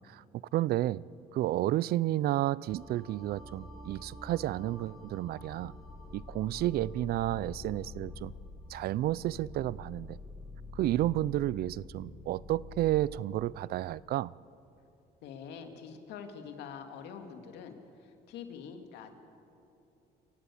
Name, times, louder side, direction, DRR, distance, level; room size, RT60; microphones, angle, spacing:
voice 1, 0.5-1.0 1.3-5.7 6.1-8.3 8.7-10.2 10.7-14.3, right 15 dB, 65° right, 0.5 m, -31 dB
sound 1, 2.7-13.2, left 2 dB, ahead, 3.3 m, -47 dB
voice 2, 15.2-19.1, left 7 dB, 85° left, 2.3 m, -45 dB
28.0 x 15.5 x 8.6 m
cardioid pair, 110°, 17 cm